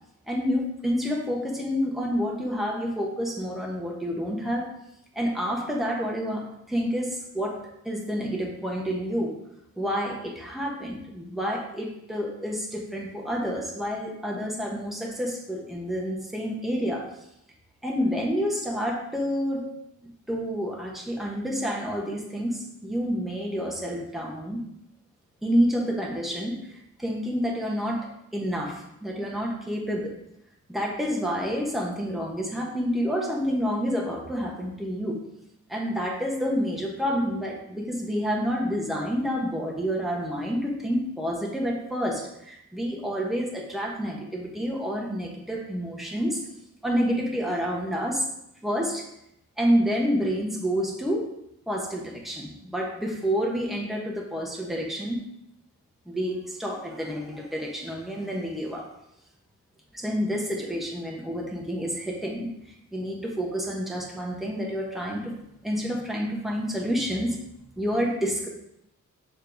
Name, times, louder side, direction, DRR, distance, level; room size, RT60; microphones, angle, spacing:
voice 1, 0.3-4.7 5.1-9.3 9.8-17.0 17.8-19.7 20.0-24.6 25.4-30.1 30.7-35.2 35.7-46.4 46.8-48.2 48.6-49.1 49.6-51.2 51.7-55.2 56.1-58.9 59.9-62.5 62.9-65.4 65.6-67.4 67.8-68.5, equal, ahead, -1 dB, 1.1 m, -29 dB
6.7 x 3.2 x 5.2 m, 0.80 s
wide cardioid pair, 100°, 32 cm